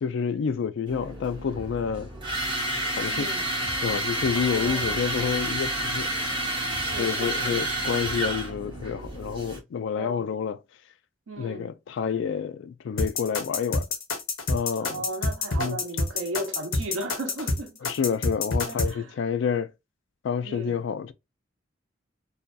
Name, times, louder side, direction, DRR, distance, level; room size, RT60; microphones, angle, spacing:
voice 1, 0.0-2.1 2.9-3.3 3.8-6.1 7.0-10.6 11.4-13.9 14.5-15.0 15.6-15.8 17.8-19.7 20.2-21.1, left 7 dB, 65° left, 0.3 m, -28 dB
sound 1, 0.9-9.6, right 1 dB, 25° right, 1.0 m, -30 dB
voice 2, 3.1-3.5 4.3-5.0 6.8-7.7 9.9-10.3 11.3-11.7 14.8-17.8 18.7-19.1 20.4-20.8, right 1 dB, 90° right, 0.7 m, -36 dB
sound 2, 13.0-18.9, left 3 dB, 90° left, 0.8 m, -27 dB
2.7 x 2.2 x 2.3 m
head